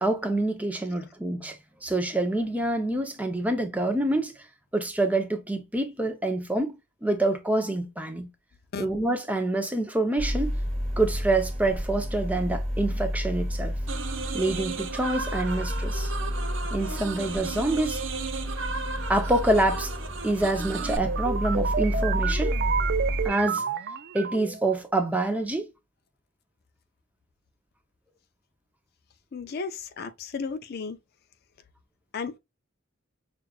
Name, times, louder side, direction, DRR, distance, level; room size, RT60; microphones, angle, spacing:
voice 1, 0.0-4.3 4.7-6.8 7.0-8.3 8.8-10.6 11.0-13.7 14.3-16.1 16.7-18.0 19.1-19.9 20.2-22.5 23.2-23.6 24.1-25.7, right 2 dB, 5° right, 0.6 m, -26 dB
sound 1, 10.2-23.3, equal, 30° right, 1.4 m, -31 dB
sound 2, 13.9-21.0, right 4 dB, 65° right, 0.8 m, -35 dB
sound 3, 20.5-24.7, right 6 dB, 50° right, 0.4 m, -30 dB
voice 2, 29.3-31.0 32.1-32.4, left 5 dB, 45° left, 0.4 m, -34 dB
6.3 x 2.4 x 2.3 m
head